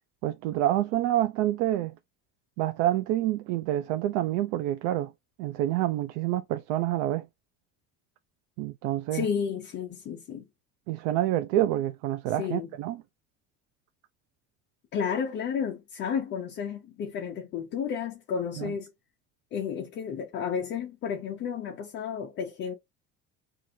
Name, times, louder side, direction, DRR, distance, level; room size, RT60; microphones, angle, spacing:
voice 1, 0.2-1.9 2.6-5.1 5.4-7.3 8.6-9.3 10.9-13.0 18.6-18.7, right 13 dB, 75° right, 0.5 m, -27 dB
voice 2, 9.1-10.4 12.4-12.7 14.9-18.9 19.5-22.7, left 7 dB, 35° left, 0.7 m, -32 dB
4.5 x 2.5 x 2.7 m
cardioid pair, 175°, 30 cm